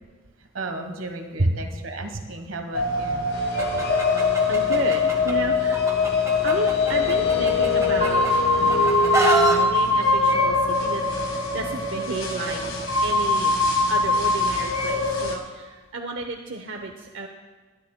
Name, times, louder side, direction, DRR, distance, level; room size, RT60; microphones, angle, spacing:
voice 1, 0.4-3.3, right 2 dB, 85° right, 5 dB, 1.3 m, -35 dB
sound 1, 2.7-15.4, left 3 dB, 75° left, 1.5 m, -22 dB
sound 2, 3.3-9.6, equal, 55° left, 1.1 m, -28 dB
Chicken rooster, 3.6-5.3 5.7-8.3 8.7-9.6, right 1 dB, 15° right, 1.5 m, -27 dB
voice 2, 4.4-5.8 6.4-8.5 9.0-12.6 13.0-17.3, right 2 dB, 70° right, 2 dB, 0.8 m, -31 dB
21.5 x 11.0 x 2.2 m, 1.3 s
head